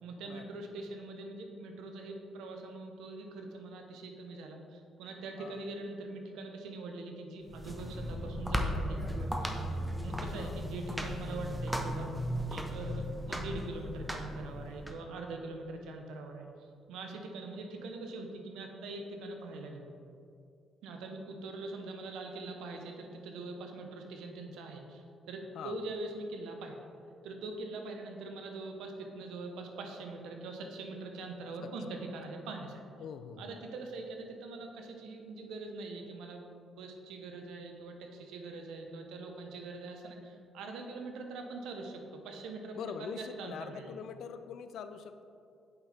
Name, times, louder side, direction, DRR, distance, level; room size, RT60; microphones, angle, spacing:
voice 1, 0.0-9.6 10.0-12.1 12.5-16.5 16.9-19.9 20.8-26.9 27.2-32.8 33.4-36.5 36.8-43.9, right 3 dB, 90° right, 3 dB, 0.8 m, -43 dB
sound 1, 7.4-14.9, equal, 5° right, 0.7 m, -36 dB
voice 2, 33.0-33.5 42.8-45.2, left 7 dB, 75° left, 9 dB, 0.4 m, -43 dB
8.0 x 5.6 x 3.4 m, 2.5 s
cardioid pair, 90°, 0 cm